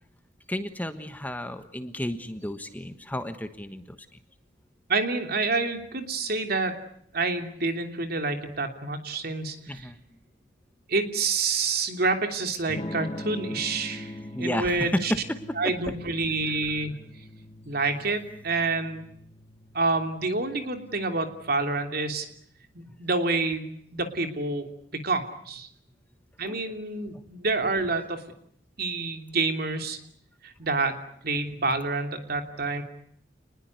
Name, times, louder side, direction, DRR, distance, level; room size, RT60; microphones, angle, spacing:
voice 1, 0.5-4.1 9.7-10.0 14.3-15.7 26.4-26.6, equal, 10° left, 9 dB, 1.4 m, -32 dB
voice 2, 4.9-6.8 7.1-9.9 10.9-15.1 15.6-17.0 17.7-19.1 19.7-22.3 22.7-24.6 24.9-25.7 26.4-28.2 28.8-30.0 30.4-31.0 31.2-32.8, right 3 dB, 55° right, 6 dB, 3.0 m, -28 dB
Electric guitar / Strum, 12.7-22.4, left 1 dB, 30° left, 1.6 m, -42 dB
28.5 x 20.5 x 9.6 m, 0.69 s
head